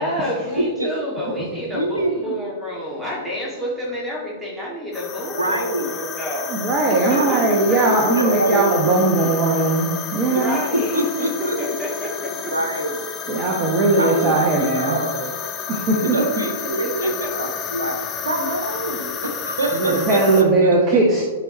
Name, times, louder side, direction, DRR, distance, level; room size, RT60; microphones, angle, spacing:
voice 1, 0.0-7.8 10.3-11.1 11.6-12.5 16.2-16.3 16.6-17.3, equal, 10° right, -4 dB, 2.3 m, -29 dB
voice 2, 1.7-2.1 5.4-5.9 7.1-9.3 10.7-11.6 12.5-13.0 14.0-15.3 16.0-18.0 18.2-20.2, right 1 dB, 80° right, 2 dB, 1.5 m, -25 dB
sound 1, 4.9-20.4, left 7 dB, 25° left, 0.9 m, -31 dB
voice 3, 6.5-10.6 13.3-15.0 15.7-16.2 19.7-21.3, right 2 dB, 30° right, -1 dB, 1.3 m, -19 dB
11.5 x 5.6 x 3.0 m, 1.3 s
figure-of-eight pair, 105°, 0 cm